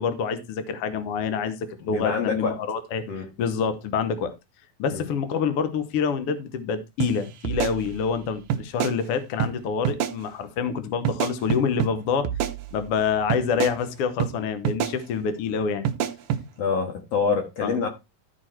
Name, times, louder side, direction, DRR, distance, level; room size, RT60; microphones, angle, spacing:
voice 1, 0.0-1.6 1.8-3.0 3.4-4.3 4.8-12.3 12.7-15.9 17.6-17.7, left 6 dB, 75° left, 1.3 m, -26 dB
voice 2, 1.8-2.6 3.1-3.3 4.9-5.0 16.6-17.9, left 5 dB, 50° left, 2.4 m, -26 dB
sound 1, 7.0-7.1 7.5-8.2 8.5-9.0 9.4-9.5 9.9-10.2 11.1-11.9 12.3-13.0 13.3-13.8 14.2-14.3 14.7-15.0 15.9-16.4, right 9 dB, 75° right, 2.2 m, -27 dB
13.0 x 4.9 x 4.5 m
omnidirectional pair, 4.2 m